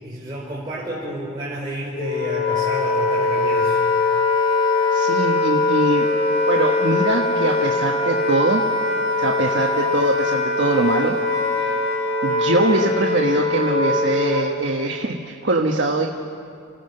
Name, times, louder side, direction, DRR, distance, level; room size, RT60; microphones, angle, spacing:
voice 1, 0.0-3.8, right 1 dB, 20° right, -8 dB, 4.1 m, -30 dB
Wind instrument woodwind instrument, 1.9-14.6, left 3 dB, 80° left, 3.7 m, -21 dB
voice 2, 4.9-6.1 6.5-8.6 9.2-11.2 11.6-11.7 12.2-16.1, right 2 dB, 60° right, 1 dB, 1.3 m, -22 dB
30.0 x 15.5 x 6.7 m, 2.3 s
head